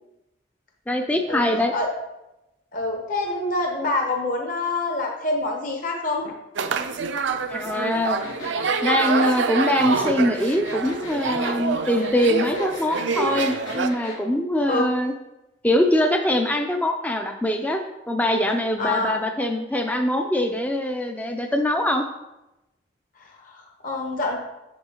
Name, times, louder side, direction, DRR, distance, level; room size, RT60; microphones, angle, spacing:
voice 1, 0.9-1.7 7.5-8.2 8.8-15.1 15.6-22.0, left 1 dB, 10° left, 5 dB, 0.4 m, -23 dB
voice 2, 2.7-6.3 14.7-14.9 18.8-19.2 23.2-24.4, left 2 dB, 45° left, 1 dB, 0.9 m, -26 dB
sound 1, 6.5-13.9, right 4 dB, 70° right, 0.5 m, -26 dB
sound 2, 8.2-14.2, left 2 dB, 85° left, 2.9 m, -38 dB
8.2 x 6.9 x 2.9 m, 0.95 s
head